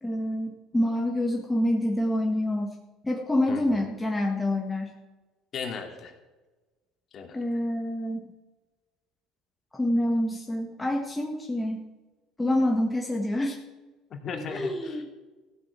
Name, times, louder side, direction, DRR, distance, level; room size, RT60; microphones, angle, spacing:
voice 1, 0.0-2.8 3.0-4.9 7.3-8.3 9.7-11.8 12.4-13.6 14.5-15.1, left 1 dB, 10° left, 0 dB, 1.6 m, -27 dB
voice 2, 3.5-3.8 5.5-6.1 7.1-7.4 14.1-15.0, left 5 dB, 45° left, 3 dB, 2.6 m, -37 dB
15.0 x 6.9 x 8.4 m, 1.2 s
supercardioid pair, 110°, 0 cm